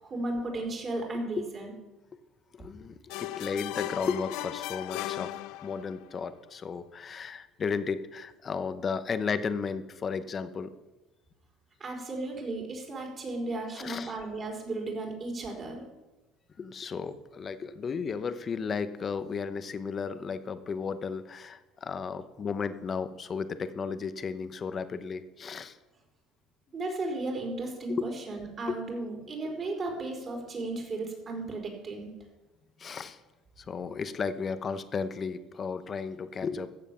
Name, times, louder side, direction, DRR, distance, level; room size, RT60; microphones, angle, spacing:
voice 1, 0.0-1.7 11.8-15.8 26.7-32.1, right 2 dB, 35° right, 1 dB, 4.2 m, -35 dB
voice 2, 2.5-5.3 5.6-10.7 13.8-14.1 16.6-25.8 27.9-28.0 28.7-28.8 32.8-33.2 33.6-36.7, left 5 dB, 35° left, 12 dB, 0.9 m, -34 dB
sound 1, 3.1-6.0, left 15 dB, 75° left, 0.5 m, -37 dB
14.5 x 7.4 x 7.0 m, 1.1 s
cardioid pair, 110°, 0 cm